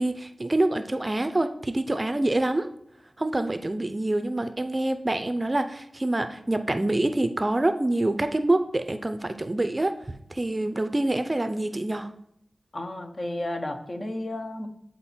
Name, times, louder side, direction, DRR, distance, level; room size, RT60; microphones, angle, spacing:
voice 1, 0.0-2.7 3.2-10.0 10.3-12.1, right 1 dB, 30° right, 9 dB, 0.5 m, -26 dB
voice 2, 12.7-14.7, left 1 dB, 45° left, 6 dB, 1.0 m, -33 dB
8.8 x 4.1 x 4.4 m, 0.75 s
wide cardioid pair, 65°, 0 cm